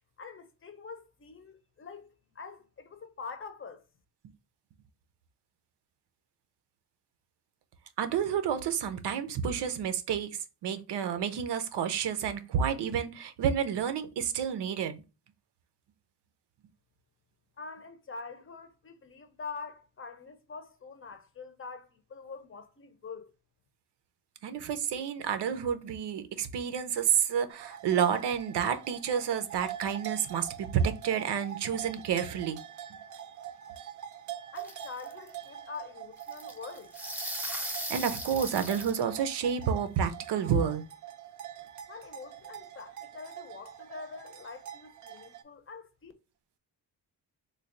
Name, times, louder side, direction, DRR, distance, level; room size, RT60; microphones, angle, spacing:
voice 1, 0.2-3.8 17.6-23.3 34.5-36.9 41.9-46.1, left 4 dB, 30° left, 0.6 m, -45 dB
voice 2, 8.0-15.0 24.4-32.6 37.9-40.9, right 8 dB, 90° right, 0.7 m, -30 dB
sound 1, 27.5-45.4, right 10 dB, 50° right, 0.5 m, -45 dB
sound 2, 34.6-35.3 36.2-39.0, right 1 dB, 5° right, 0.7 m, -37 dB
3.3 x 2.3 x 3.6 m
wide cardioid pair, 125°, 40 cm